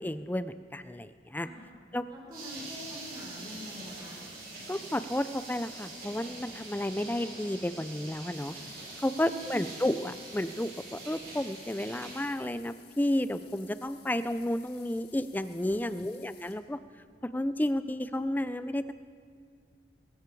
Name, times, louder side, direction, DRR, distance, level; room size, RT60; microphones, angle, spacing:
voice 1, 0.0-1.5 1.9-2.1 4.7-8.5 9.0-16.8 17.2-18.9, left 1 dB, 10° left, 13 dB, 0.4 m, -32 dB
voice 2, 2.1-4.2 9.1-9.6 15.8-16.1, equal, 25° right, -5 dB, 5.1 m, -46 dB
sound 1, 2.3-12.2, right 2 dB, 50° right, 5.2 m, -44 dB
sound 2, 8.3-16.5, left 9 dB, 65° left, 1.7 m, -57 dB
22.5 x 13.5 x 4.7 m, 2.2 s
head